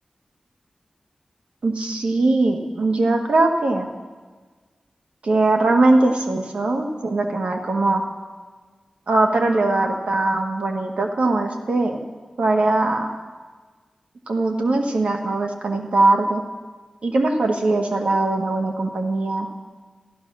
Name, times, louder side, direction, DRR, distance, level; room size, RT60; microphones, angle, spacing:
voice 1, 1.6-3.9 5.2-8.0 9.1-12.0 12.4-13.1 14.3-16.4 17.0-19.5, right 2 dB, 85° right, 3 dB, 1.6 m, -20 dB
13.0 x 11.5 x 6.3 m, 1.4 s
wide cardioid pair, 75°, 2 cm